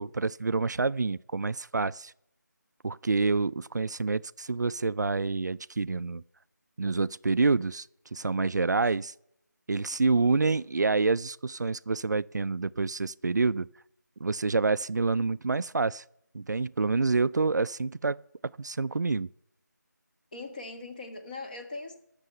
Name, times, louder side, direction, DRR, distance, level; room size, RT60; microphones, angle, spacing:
voice 1, 0.0-2.1 2.8-6.2 6.8-9.1 9.7-13.7 14.2-16.0 16.3-18.2 18.6-19.3, right 4 dB, 70° right, 0.4 m, -27 dB
voice 2, 20.3-21.9, left 3 dB, 25° left, 1.6 m, -40 dB
18.0 x 6.7 x 5.6 m
figure-of-eight pair, 170°, 10 cm